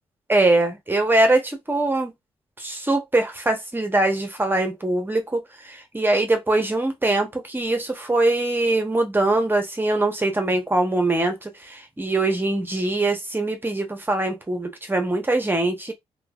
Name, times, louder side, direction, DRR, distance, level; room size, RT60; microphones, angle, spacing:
voice 1, 0.3-2.1 2.6-15.9, right 2 dB, 20° right, 1.0 m, -22 dB
3.1 x 2.3 x 2.4 m
cardioid pair, 65°, 11 cm